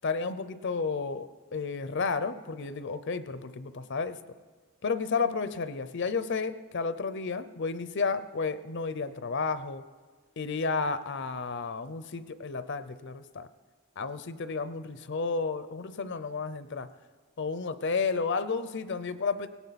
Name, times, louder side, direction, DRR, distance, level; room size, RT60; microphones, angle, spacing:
voice 1, 0.0-4.2 4.8-9.8 10.4-13.5 14.0-16.9 17.4-19.5, left 4 dB, 50° left, 13 dB, 0.6 m, -32 dB
18.0 x 17.0 x 4.1 m, 1.4 s
head